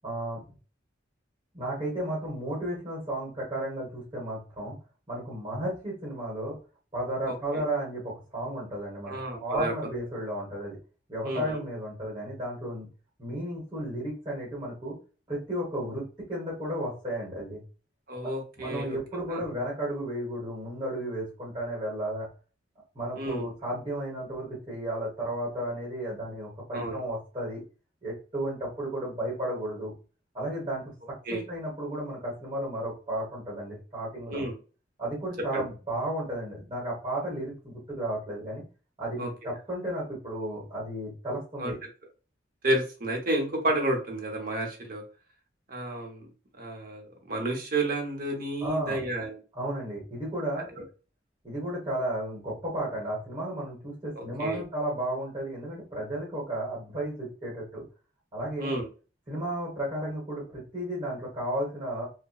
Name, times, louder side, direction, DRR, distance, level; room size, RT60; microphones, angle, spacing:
voice 1, 0.0-0.4 1.5-4.8 5.1-6.6 6.9-9.1 9.4-10.8 11.1-12.9 13.2-15.0 15.3-16.0 16.3-17.6 18.2-18.3 18.6-22.3 22.9-27.6 28.0-29.9 30.3-30.8 31.3-34.5 35.0-38.6 39.0-41.8 48.6-49.0 49.5-50.8 51.4-57.8 58.3-58.7 59.3-62.1, right 1 dB, 25° right, -5 dB, 1.2 m, -33 dB
voice 2, 7.3-7.6 9.1-9.7 11.2-11.6 18.1-19.0 19.3-19.5 23.1-23.4 26.7-27.0 31.3-31.4 34.3-34.5 35.5-35.6 39.2-39.5 41.6-41.7 42.6-45.0 45.7-46.2 46.6-49.4 54.2-54.6 58.6-58.9, right 1 dB, 50° right, 1 dB, 0.8 m, -31 dB
2.8 x 2.1 x 2.3 m, 0.35 s
head